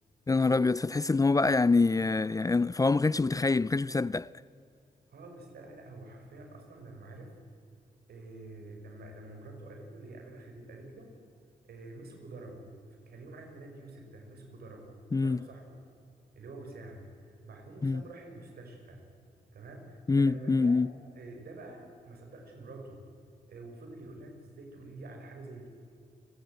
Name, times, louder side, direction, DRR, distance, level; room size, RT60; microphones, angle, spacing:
voice 1, 0.3-4.3 15.1-15.5 17.8-18.0 20.1-20.9, left 3 dB, 20° left, 0.5 m, -25 dB
voice 2, 5.1-7.4 8.1-11.2 11.6-12.7 13.1-15.8 16.4-19.1 19.5-20.8 21.1-23.0 23.5-25.7, right 2 dB, 80° right, 5.5 m, -47 dB
29.0 x 19.5 x 7.8 m
cardioid pair, 70°, 16 cm